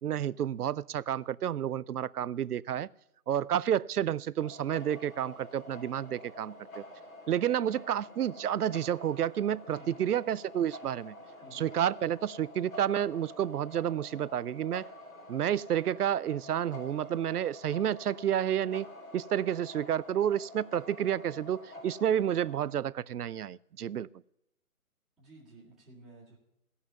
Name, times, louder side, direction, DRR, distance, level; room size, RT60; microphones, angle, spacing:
voice 1, 0.0-2.9 3.3-6.8 7.3-11.1 11.5-14.9 15.3-18.9 19.1-24.1, right 10 dB, 80° right, 20 dB, 0.6 m, -30 dB
sound 1, 4.4-22.8, left 1 dB, 60° left, 5.0 m, -48 dB
voice 2, 9.8-10.1 11.4-11.7 25.2-26.4, right 1 dB, ahead, -11 dB, 2.2 m, -53 dB
17.0 x 5.7 x 8.1 m, 0.83 s
hypercardioid pair, 160°, 45 cm